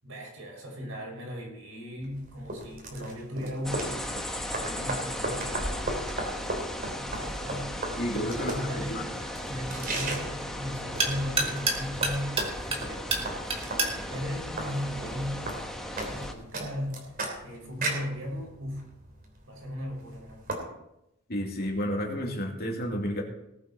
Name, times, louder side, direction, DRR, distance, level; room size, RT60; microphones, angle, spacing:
voice 1, 0.0-4.2 4.5-6.0 6.9-17.1 17.4-18.9 19.4-20.5, equal, 75° right, -1 dB, 5.8 m, -37 dB
sound 1, 2.0-20.5, right 2 dB, 45° right, 3.3 m, -37 dB
sound 2, 3.6-16.3, left 1 dB, ahead, 1.3 m, -36 dB
voice 2, 8.0-9.0 21.3-23.2, equal, 50° left, 0 dB, 2.7 m, -31 dB
sound 3, 8.0-15.5, right 2 dB, 30° right, 2.1 m, -34 dB
19.0 x 8.3 x 4.3 m, 0.86 s
head